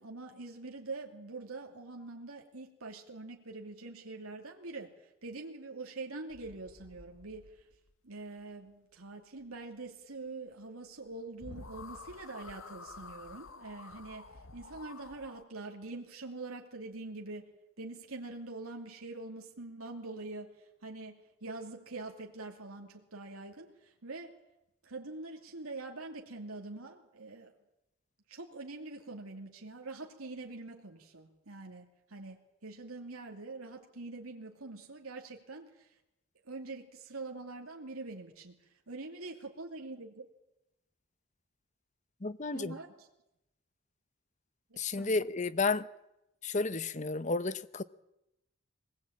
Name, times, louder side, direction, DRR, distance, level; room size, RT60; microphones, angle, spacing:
voice 1, 0.0-7.7 8.0-24.3 24.8-27.5 28.3-35.9 36.4-38.6 38.9-40.3 42.5-43.1 44.7-45.2, right 3 dB, 85° right, 2.7 m, -44 dB
sound 1, 6.3-7.9 11.1-11.2 11.4-15.4, left 3 dB, 65° left, 1.2 m, -50 dB
voice 2, 42.2-42.7 44.8-45.9 46.4-47.8, left 3 dB, 35° left, 0.8 m, -32 dB
23.0 x 20.0 x 8.8 m
head